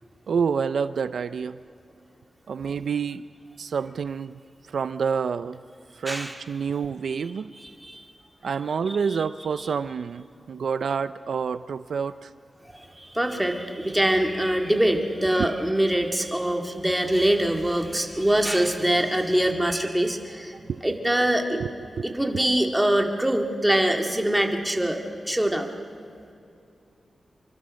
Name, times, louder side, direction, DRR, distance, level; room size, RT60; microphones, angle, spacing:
voice 1, 0.3-1.6 2.5-3.2 3.6-4.3 4.7-5.6 6.0-7.5 8.4-12.3 15.4-15.5 20.7-20.8 21.5-21.7 22.0-22.1, right 6 dB, 80° right, 13 dB, 0.5 m, -28 dB
voice 2, 7.5-8.1 8.9-9.0 12.7-20.5 20.8-21.6 22.0-25.7, right 1 dB, 5° right, 3 dB, 2.0 m, -24 dB
26.0 x 24.0 x 6.4 m, 2.6 s
wide cardioid pair, 155°, 0 cm